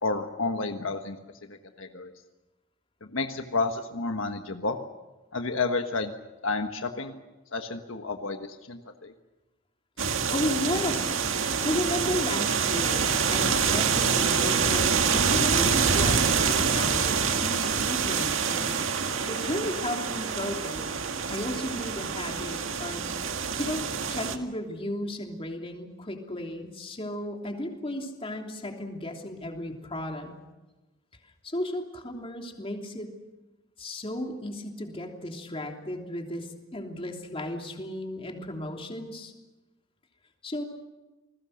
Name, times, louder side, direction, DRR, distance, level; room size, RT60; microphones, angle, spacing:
voice 1, 0.0-1.2 1.5-2.1 3.1-4.8 5.3-6.1 6.4-7.2 7.5-9.1, left 3 dB, 75° left, 6 dB, 1.5 m, -30 dB
sound 1, 10.0-24.4, right 6 dB, 75° right, 1.9 m, -26 dB
voice 2, 10.3-11.1 11.6-18.9 19.3-23.0 23.6-30.3 31.4-33.2 33.8-39.3 40.4-40.6, left 1 dB, 25° left, 2 dB, 3.2 m, -34 dB
29.5 x 20.5 x 6.6 m, 1.1 s
head